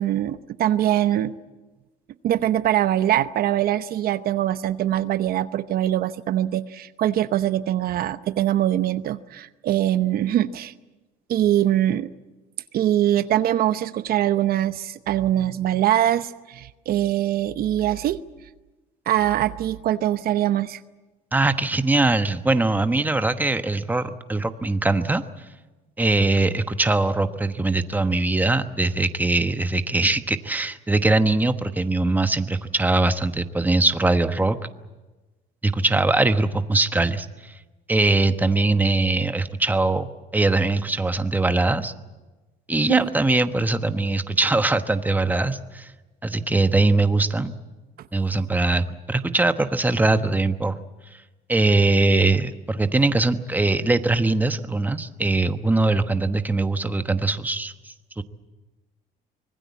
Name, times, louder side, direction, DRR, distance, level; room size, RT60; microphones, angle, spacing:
voice 1, 0.0-1.3 2.2-10.7 11.3-12.1 12.7-18.2 19.1-20.8 42.9-43.1, right 12 dB, 65° right, 12 dB, 0.8 m, -22 dB
voice 2, 21.3-25.2 26.0-34.6 35.6-37.5 37.9-41.9 42.7-45.9 46.2-47.5 48.1-50.8 51.5-57.7 58.2-58.3, right 2 dB, 10° right, 9 dB, 1.2 m, -21 dB
25.0 x 20.0 x 8.4 m, 1.2 s
cardioid pair, 110°, 17 cm